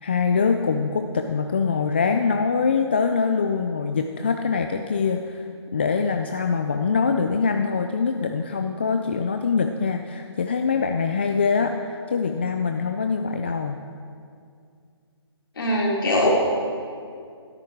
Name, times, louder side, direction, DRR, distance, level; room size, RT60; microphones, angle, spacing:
voice 1, 0.0-5.5 5.7-13.8, left 5 dB, 25° left, 5 dB, 0.4 m, -23 dB
voice 2, 15.6-16.3, left 1 dB, 50° left, -4 dB, 3.9 m, -21 dB
15.5 x 13.0 x 4.6 m, 2.3 s
hypercardioid pair, 165°, 15 cm